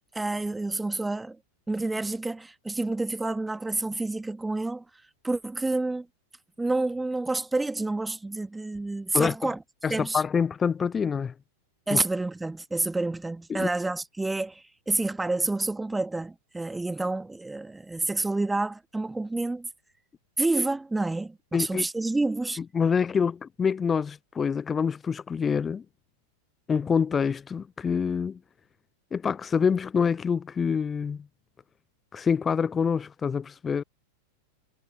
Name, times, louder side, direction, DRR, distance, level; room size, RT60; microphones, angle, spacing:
voice 1, 0.1-1.4 1.7-4.8 5.2-6.1 6.6-9.6 9.9-10.2 11.9-19.7 20.4-22.6, right 2 dB, 5° right, 1.8 m, -29 dB
voice 2, 9.1-9.5 9.8-11.3 11.9-12.0 13.5-13.7 21.5-21.8 22.6-25.8 26.7-28.4 29.1-31.3 32.1-33.8, left 6 dB, 20° left, 0.4 m, -26 dB
figure-of-eight pair, 90°, 0 cm